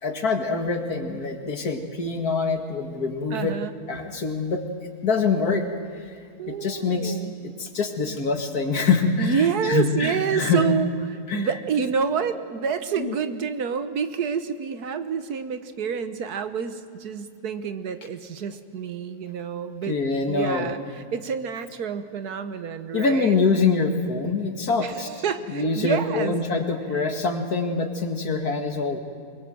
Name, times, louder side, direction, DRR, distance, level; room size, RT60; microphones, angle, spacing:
voice 1, 0.0-3.6 3.9-4.7 5.0-5.7 6.5-10.7 11.3-11.5 13.0-13.1 19.8-20.7 22.9-25.1 25.5-29.0, left 4 dB, 75° left, 4 dB, 2.4 m, -25 dB
voice 2, 3.3-3.7 6.4-7.3 9.2-20.0 20.3-20.8 21.1-23.4 24.8-26.4, right 6 dB, 90° right, 10 dB, 1.7 m, -28 dB
24.0 x 22.0 x 7.8 m, 2.3 s
omnidirectional pair, 1.6 m